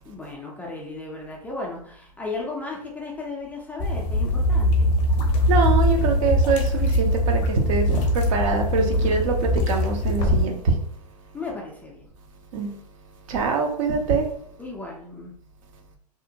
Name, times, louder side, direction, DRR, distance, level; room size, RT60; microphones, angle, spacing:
voice 1, 0.1-5.0 11.3-12.1 14.6-15.3, left 3 dB, 5° left, 0.3 m, -35 dB
sound 1, 3.8-10.5, left 1 dB, 35° left, 0.7 m, -22 dB
voice 2, 5.5-10.7 12.5-12.7 13.3-14.3, right 4 dB, 55° right, 0.6 m, -24 dB
2.7 x 2.1 x 2.6 m
hypercardioid pair, 105°, 21 cm